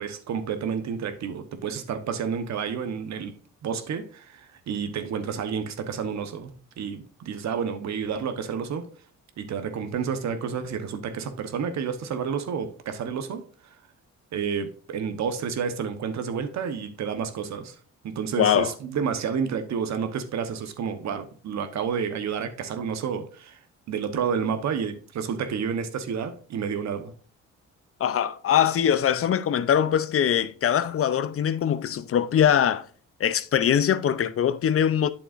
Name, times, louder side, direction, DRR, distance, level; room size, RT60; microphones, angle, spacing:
voice 1, 0.0-3.4 3.6-6.5 6.8-8.9 9.4-13.5 14.3-17.7 18.0-23.6 23.9-27.1, right 6 dB, 65° right, 1.1 m, -30 dB
voice 2, 18.4-18.7 28.0-32.9 33.2-35.1, left 9 dB, 50° left, 0.6 m, -22 dB
8.6 x 6.9 x 2.5 m
cardioid pair, 90°, 30 cm